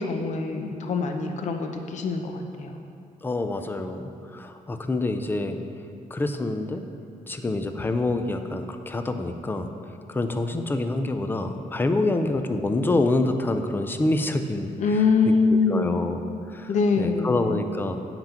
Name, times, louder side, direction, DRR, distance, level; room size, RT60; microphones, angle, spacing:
voice 1, 0.0-2.7 14.8-16.0 16.7-17.6, left 4 dB, 55° left, 5 dB, 0.8 m, -24 dB
voice 2, 3.2-5.6 6.1-6.8 7.3-9.7 10.1-16.2 16.5-18.0, left 2 dB, 15° left, 7 dB, 0.4 m, -27 dB
8.9 x 5.9 x 5.7 m, 2.5 s
wide cardioid pair, 175°, 14 cm